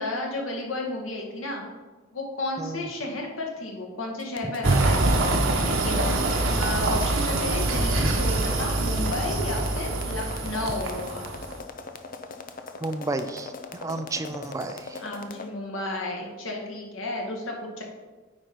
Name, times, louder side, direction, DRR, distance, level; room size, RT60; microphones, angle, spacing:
voice 1, 0.0-1.6 2.1-6.2 6.6-11.4 15.0-17.8, left 2 dB, 90° left, 0 dB, 1.8 m, -32 dB
voice 2, 2.6-2.9 4.4-4.5 12.8-15.0, right 2 dB, 15° right, 8 dB, 0.4 m, -32 dB
sound 1, 4.2-15.5, left 4 dB, 45° left, 0.6 m, -40 dB
Bowed string instrument, 4.6-11.1, right 2 dB, 50° right, 0.7 m, -33 dB
sound 2, 4.6-11.6, right 2 dB, 80° right, 1.2 m, -25 dB
9.0 x 4.3 x 5.2 m, 1.3 s
head